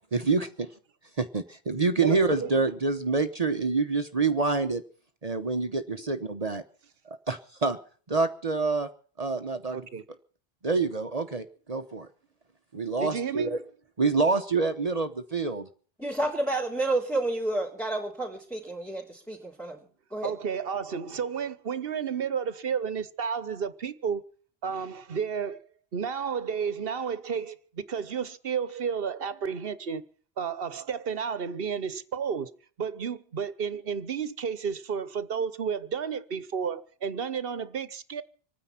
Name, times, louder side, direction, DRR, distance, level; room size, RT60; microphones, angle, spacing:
voice 1, 0.1-0.7 1.2-4.8 5.2-6.6 7.1-7.8 8.1-8.9 9.2-9.9 10.6-12.1 12.7-13.6 14.0-15.7, right 4 dB, 40° right, 1.1 m, -27 dB
voice 2, 2.0-2.5 9.7-10.0 13.0-13.5 20.2-24.2 24.6-25.6 25.9-30.0 30.4-32.5 32.8-38.2, right 6 dB, 65° right, 1.2 m, -32 dB
voice 3, 16.0-19.8 20.1-20.3, right 2 dB, 5° left, 3.2 m, -30 dB
26.0 x 9.7 x 5.8 m
omnidirectional pair, 1.0 m